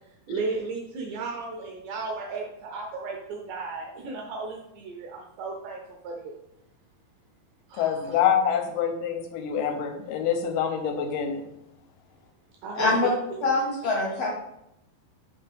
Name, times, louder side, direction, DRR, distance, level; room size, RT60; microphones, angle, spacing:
voice 1, 0.3-6.4 7.7-8.2 12.6-13.5, right 3 dB, 80° right, 1 dB, 1.9 m, -34 dB
voice 2, 7.8-11.4, left 8 dB, 85° left, 5 dB, 2.7 m, -26 dB
voice 3, 12.8-13.1 13.4-14.3, left 3 dB, 55° left, -3 dB, 2.0 m, -24 dB
5.6 x 5.3 x 3.5 m, 0.81 s
omnidirectional pair, 4.3 m